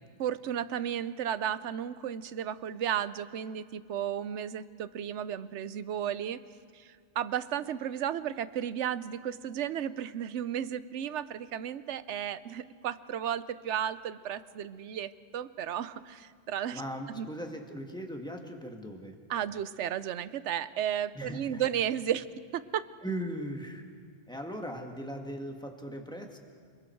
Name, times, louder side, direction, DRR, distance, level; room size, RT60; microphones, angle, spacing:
voice 1, 0.2-6.4 6.7-16.8 17.1-17.3 19.3-22.3 22.5-22.8, right 10 dB, 80° right, 15 dB, 1.0 m, -34 dB
voice 2, 16.7-19.2 21.2-21.7 23.0-23.8 24.3-26.4, equal, 5° left, 3 dB, 1.9 m, -39 dB
29.5 x 21.0 x 4.6 m, 2.1 s
omnidirectional pair, 1.2 m